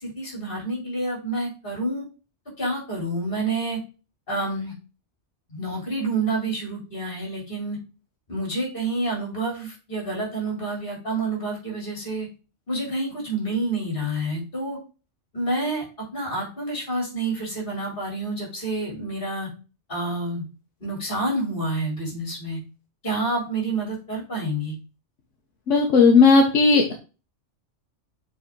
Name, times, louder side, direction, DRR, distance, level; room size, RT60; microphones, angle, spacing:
voice 1, 0.0-2.0 2.6-3.8 4.3-4.7 5.5-7.8 8.3-12.3 12.7-14.8 15.3-15.8 16.1-19.5 19.9-20.4 20.8-22.6 23.0-24.7, right 2 dB, 45° left, -2 dB, 3.3 m, -28 dB
voice 2, 25.7-26.9, left 4 dB, 80° left, 2 dB, 1.3 m, -15 dB
7.2 x 4.2 x 3.8 m, 0.33 s
omnidirectional pair, 1.2 m